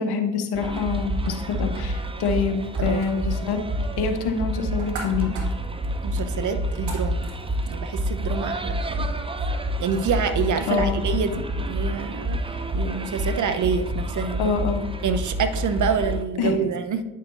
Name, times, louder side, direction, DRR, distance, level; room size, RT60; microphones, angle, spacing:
voice 1, 0.0-3.6 4.0-5.3 10.7-11.0 14.4-14.9 16.4-16.7, left 5 dB, 65° left, 6 dB, 1.1 m, -25 dB
sound 1, 0.5-16.2, equal, 15° right, 0.7 m, -28 dB
sound 2, 0.8-8.1, right 2 dB, 70° right, 1.8 m, -43 dB
voice 2, 6.0-7.3 7.7-9.1 9.8-12.4 12.7-14.6 15.0-17.0, right 6 dB, 45° right, 9 dB, 0.8 m, -27 dB
9.3 x 6.4 x 2.6 m, 1.1 s
hypercardioid pair, 50°, 41 cm